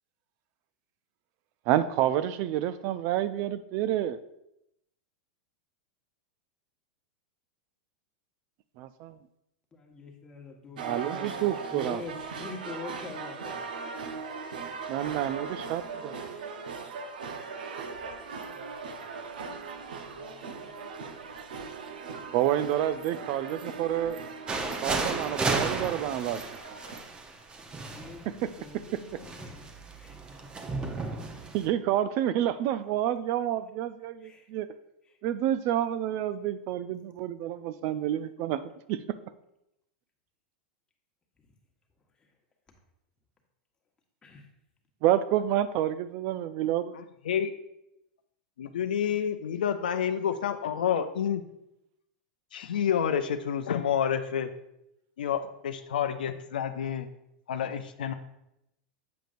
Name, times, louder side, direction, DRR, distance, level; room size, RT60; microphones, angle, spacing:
voice 1, 1.7-4.2 8.8-9.2 10.8-12.0 14.9-16.2 22.3-24.2 24.8-26.4 31.5-34.7 35.2-38.6 38.9-39.0 45.0-47.0, right 12 dB, 50° right, 13 dB, 0.3 m, -28 dB
voice 2, 9.7-13.9 17.2-19.2 19.8-21.4 27.8-30.6 34.2-34.5 35.0-35.2 41.4-41.5 42.1-42.4 44.2-44.5, left 3 dB, 20° left, 1 dB, 1.2 m, -47 dB
sound 1, 10.8-27.0, right 5 dB, 80° right, 0.7 m, -39 dB
sound 2, 24.5-31.7, right 3 dB, 20° right, 0.7 m, -34 dB
voice 3, 46.9-47.5 48.6-51.4 52.5-54.5 55.2-57.1 57.5-58.1, left 8 dB, 85° left, 8 dB, 0.5 m, -29 dB
7.6 x 5.1 x 2.5 m, 0.83 s
hypercardioid pair, 110°, 5 cm